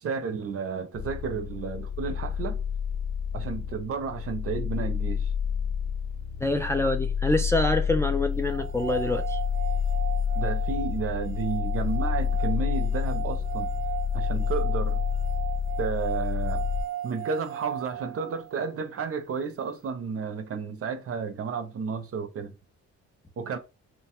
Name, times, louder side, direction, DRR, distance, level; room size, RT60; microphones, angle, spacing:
voice 1, 0.0-2.6 3.3-5.3 10.3-13.7 14.1-15.0 15.8-16.7 17.0-22.5 23.4-23.6, right 5 dB, 50° right, 0.7 m, -32 dB
sound 1, 0.9-16.8, left 7 dB, 60° left, 0.6 m, -29 dB
voice 2, 6.4-9.4, left 2 dB, 10° left, 0.4 m, -26 dB
sound 2, 8.5-18.6, right 11 dB, 85° right, 0.5 m, -37 dB
2.9 x 2.2 x 2.9 m
cardioid pair, 90°, 30 cm